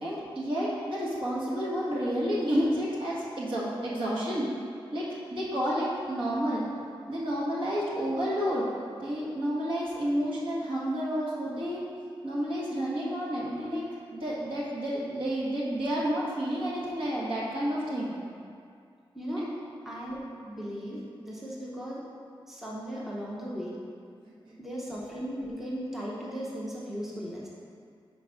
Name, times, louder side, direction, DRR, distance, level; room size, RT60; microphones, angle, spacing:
voice 1, 0.0-4.5 4.9-6.6 7.1-8.7 9.0-11.8 12.2-13.8 14.1-18.1 19.4-19.5 24.5-24.6, equal, 60° right, -7 dB, 1.5 m, -30 dB
voice 2, 19.9-22.0 22.5-23.8 24.6-27.5, equal, 5° right, -6 dB, 0.7 m, -37 dB
4.8 x 4.1 x 5.9 m, 2.3 s
wide cardioid pair, 180°, 10 cm